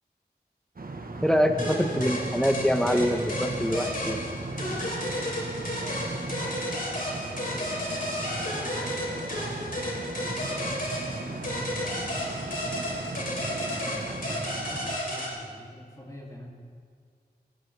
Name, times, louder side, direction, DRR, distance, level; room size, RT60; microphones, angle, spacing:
sound 1, 0.8-15.0, right 2 dB, 60° right, 1.2 m, -37 dB
voice 1, 1.2-4.2, equal, 5° left, 6 dB, 1.2 m, -25 dB
sound 2, 1.6-15.3, left 1 dB, 55° left, 3.8 m, -33 dB
voice 2, 5.7-7.7 8.0-12.5 13.1-16.5, equal, 20° left, -3 dB, 2.9 m, -45 dB
20.0 x 17.0 x 3.4 m, 2.1 s
wide cardioid pair, 70°, 17 cm